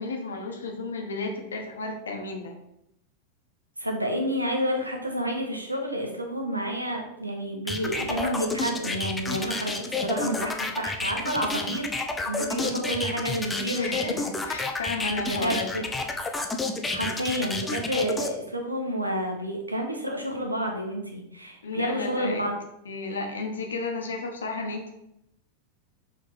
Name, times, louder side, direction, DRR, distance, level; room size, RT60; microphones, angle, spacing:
voice 1, 0.0-2.5 13.8-15.7 21.6-22.5 22.9-24.9, left 3 dB, 70° left, 2 dB, 1.2 m, -33 dB
voice 2, 3.8-12.0 12.2-14.1 15.3-15.8 16.9-22.5, equal, 85° right, 2 dB, 1.1 m, -29 dB
sound 1, 7.7-18.3, left 3 dB, 10° left, 0.7 m, -30 dB
6.2 x 3.7 x 4.5 m, 0.82 s
figure-of-eight pair, 90°, 0 cm